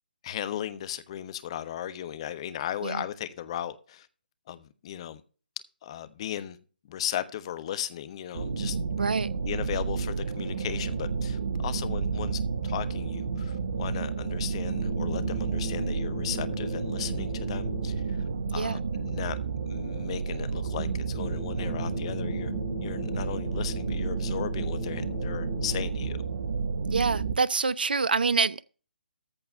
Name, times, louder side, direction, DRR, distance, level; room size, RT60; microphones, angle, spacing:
voice 1, 0.2-4.1 4.5-5.2 5.8-6.6 6.8-8.8 9.4-18.2 18.5-19.4 19.7-22.5 22.8-26.2, left 11 dB, 35° left, 1.1 m, -36 dB
sound 1, 8.3-27.4, right 5 dB, 55° right, 1.4 m, -31 dB
voice 2, 9.0-9.3 18.5-18.8 26.9-28.6, right 4 dB, 70° right, 0.5 m, -26 dB
sound 2, 14.7-18.2 21.1-26.2, left 7 dB, 20° left, 0.9 m, -41 dB
14.0 x 4.7 x 6.2 m
figure-of-eight pair, 140°, 5 cm